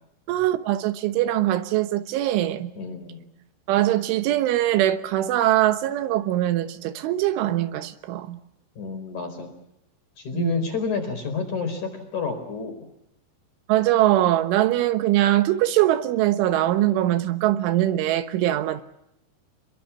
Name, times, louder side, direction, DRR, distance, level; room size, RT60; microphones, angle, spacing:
voice 1, 0.3-2.7 3.7-8.4 10.3-10.6 13.7-18.8, right 13 dB, 85° right, 3.6 m, -22 dB
voice 2, 2.8-3.3 8.8-9.5 10.2-12.9, left 5 dB, 40° left, 5.6 m, -29 dB
27.0 x 22.5 x 7.1 m
omnidirectional pair, 5.4 m